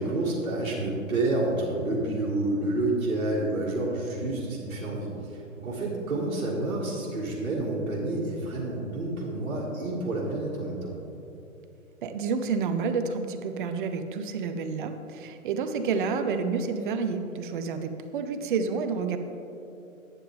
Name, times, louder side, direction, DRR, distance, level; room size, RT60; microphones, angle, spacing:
voice 1, 0.0-10.9, right 2 dB, 65° right, -7 dB, 2.2 m, -29 dB
voice 2, 12.0-19.2, right 5 dB, 40° right, 8 dB, 0.7 m, -29 dB
11.0 x 8.9 x 3.6 m, 2.7 s
figure-of-eight pair, 125°, 41 cm